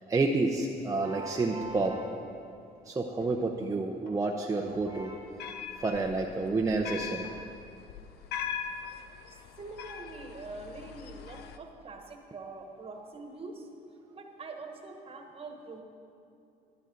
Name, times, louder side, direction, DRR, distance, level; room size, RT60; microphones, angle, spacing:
voice 1, 0.1-2.1 2.9-5.3 5.7-7.3, right 3 dB, 20° right, 0 dB, 0.6 m, -29 dB
sound 1, 0.6-0.8 1.2-2.2 3.2-3.5 4.1-5.0 5.8-6.1 6.7-7.3, left 2 dB, 60° left, 1.7 m, -53 dB
sound 2, 5.0-11.6, left 7 dB, 75° left, 0.6 m, -41 dB
voice 2, 9.6-13.7 14.1-15.8, right 3 dB, 35° right, 4 dB, 1.3 m, -44 dB
11.5 x 11.5 x 3.9 m, 2.7 s
cardioid pair, 110°, 17 cm